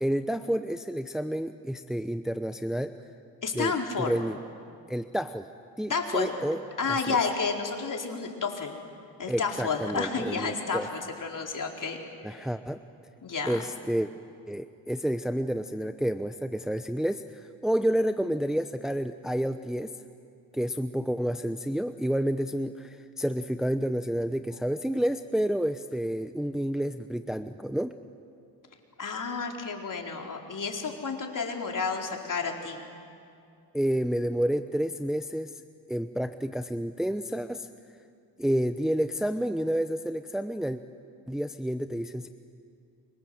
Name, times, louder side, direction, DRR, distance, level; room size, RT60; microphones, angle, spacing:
voice 1, 0.0-3.0 3.5-4.4 4.9-5.5 5.8-6.6 7.1-7.2 9.3-10.9 12.2-12.8 13.5-14.1 14.5-19.9 20.5-27.9 33.7-35.6 35.9-37.7 38.4-40.8 41.3-42.3, equal, ahead, 9 dB, 0.9 m, -29 dB
voice 2, 3.4-4.1 5.9-6.4 6.8-8.7 9.2-12.4 13.2-13.6 29.0-32.9, left 5 dB, 45° left, 1 dB, 4.5 m, -31 dB
30.0 x 25.0 x 7.9 m, 2.4 s
cardioid pair, 75°, 44 cm